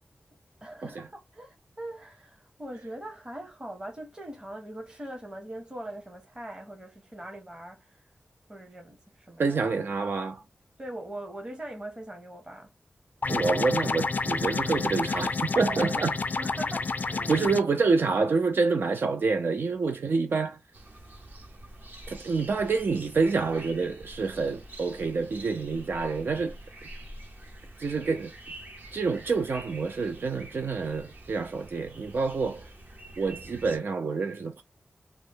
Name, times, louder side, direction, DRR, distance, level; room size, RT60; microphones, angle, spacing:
voice 1, 0.6-8.0 8.5-9.6 10.8-12.7 16.4-17.3, right 1 dB, 25° right, 0.9 m, -41 dB
voice 2, 9.4-10.4 13.3-16.2 17.3-20.6 22.1-26.6 27.8-28.4 28.9-32.7 33.2-34.6, right 4 dB, 70° right, 0.4 m, -27 dB
sound 1, 13.2-17.6, left 4 dB, 50° left, 0.3 m, -29 dB
sound 2, 20.7-33.8, right 1 dB, 50° right, 0.9 m, -46 dB
3.0 x 2.0 x 3.4 m
wide cardioid pair, 115°, 4 cm